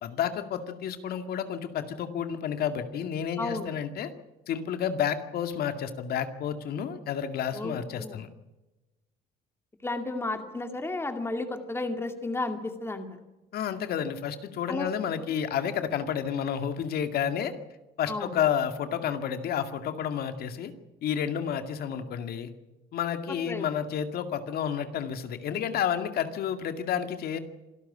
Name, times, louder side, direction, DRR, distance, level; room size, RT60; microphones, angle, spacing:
voice 1, 0.0-4.1 4.5-8.3 13.5-17.6 18.0-20.7 21.0-22.5 22.9-27.4, left 8 dB, 65° left, 8 dB, 2.2 m, -30 dB
voice 2, 3.4-3.7 7.5-8.2 9.8-13.1 14.7-14.9 18.1-18.4 23.3-23.7, left 2 dB, 15° left, 7 dB, 2.4 m, -33 dB
26.5 x 12.5 x 9.9 m, 1.1 s
cardioid pair, 110°, 17 cm